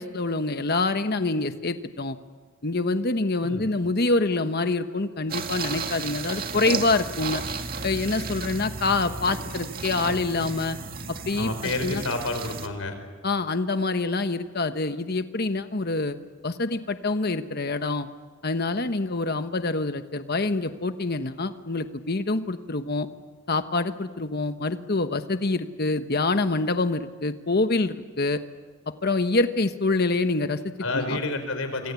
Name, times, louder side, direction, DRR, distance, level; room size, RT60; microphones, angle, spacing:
voice 1, 0.0-2.2 2.6-7.4 7.8-10.8 11.1-12.0 13.2-16.2 16.4-18.1 18.4-23.1 23.5-28.4 29.0-30.6 30.9-31.2, left 3 dB, 50° left, 9 dB, 1.2 m, -26 dB
sound 1, 5.3-12.7, right 4 dB, 45° right, 2.0 m, -33 dB
voice 2, 11.4-12.9 30.8-31.9, left 2 dB, 85° left, 8 dB, 4.9 m, -29 dB
26.5 x 26.0 x 8.4 m, 1.4 s
head